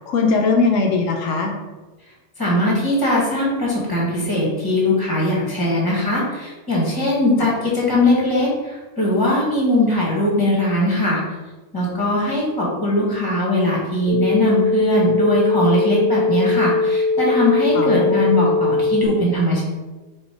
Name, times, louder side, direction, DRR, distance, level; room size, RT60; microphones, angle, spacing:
voice 1, 0.1-1.5 17.7-18.3, left 4 dB, 80° left, 2 dB, 1.0 m, -20 dB
voice 2, 2.4-11.2 11.7-19.6, left 1 dB, 15° left, -4 dB, 1.3 m, -20 dB
sound 1, 14.1-19.1, left 3 dB, 60° left, 1.0 m, -20 dB
4.4 x 2.7 x 4.4 m, 1.2 s
omnidirectional pair, 1.3 m